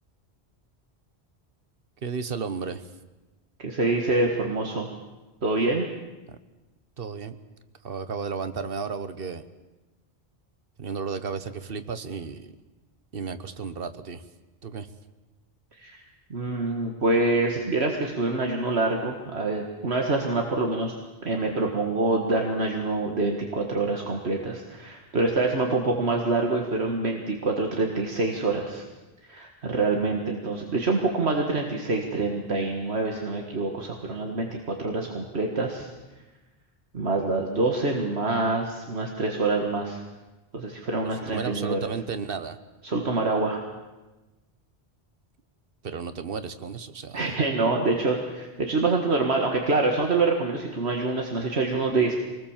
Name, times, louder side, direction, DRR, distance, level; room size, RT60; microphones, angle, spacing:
voice 1, 2.0-2.8 7.0-7.4 7.8-9.4 10.8-12.5 13.1-14.2 14.6-14.9 41.0-42.6 45.8-47.3, right 5 dB, 60° right, 11 dB, 1.3 m, -33 dB
voice 2, 3.6-4.9 5.4-5.9 15.8-16.0 16.3-20.9 21.2-28.8 29.2-35.9 36.9-40.0 40.5-41.9 42.8-43.6 47.1-52.1, right 3 dB, 80° right, 2 dB, 2.1 m, -26 dB
24.5 x 19.5 x 7.3 m, 1.1 s
omnidirectional pair, 1.1 m